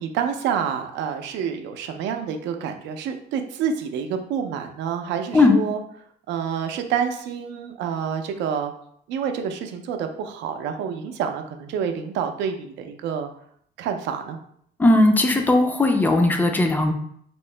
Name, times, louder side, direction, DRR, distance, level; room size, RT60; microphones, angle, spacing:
voice 1, 0.0-5.8 6.3-8.7 9.1-13.3 13.8-14.4, right 7 dB, 85° right, 6 dB, 0.5 m, -28 dB
voice 2, 14.8-16.9, left 2 dB, 10° left, 4 dB, 0.3 m, -17 dB
3.0 x 2.7 x 3.2 m, 0.66 s
cardioid pair, 160°, 18 cm